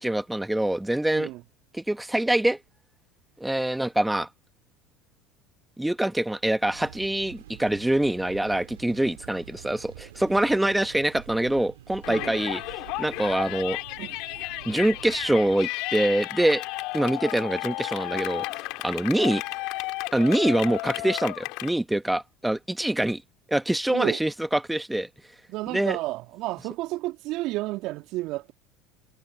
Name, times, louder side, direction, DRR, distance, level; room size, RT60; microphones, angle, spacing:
voice 1, 0.0-1.3 1.7-2.6 3.4-4.3 5.8-12.6 13.0-13.8 14.6-16.6 16.9-18.4 18.8-19.4 20.1-23.2 23.5-25.1 25.7-26.0, right 1 dB, 5° right, 1.4 m, -25 dB
sound 1, 6.7-15.6, right 14 dB, 80° right, 2.4 m, -47 dB
Yell, 12.0-21.7, left 23 dB, 60° left, 3.1 m, -33 dB
voice 2, 12.1-12.4 14.0-14.2 23.9-24.2 25.5-28.5, right 18 dB, 60° right, 2.0 m, -31 dB
hypercardioid pair, 80°, 0 cm